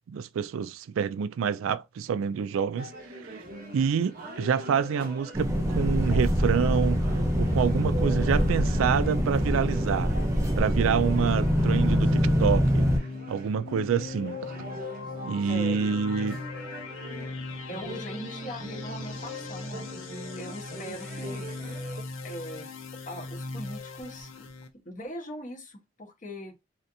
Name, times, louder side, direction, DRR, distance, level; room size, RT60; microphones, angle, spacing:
voice 1, 0.1-2.9 3.3-3.4 3.7-10.1 10.6-12.9 13.3-14.4 15.2-16.4, right 7 dB, 90° right, 0.3 m, -27 dB
sound 1, 2.8-22.0, right 1 dB, 50° right, 0.8 m, -42 dB
sound 2, 5.3-13.0, equal, 15° right, 0.6 m, -24 dB
sound 3, 12.1-24.7, left 3 dB, 85° left, 0.6 m, -38 dB
voice 2, 15.5-16.0 17.7-19.9 20.4-21.4 22.2-22.7 23.1-24.5 24.8-26.5, equal, 40° left, 1.2 m, -40 dB
3.2 x 2.7 x 2.6 m
head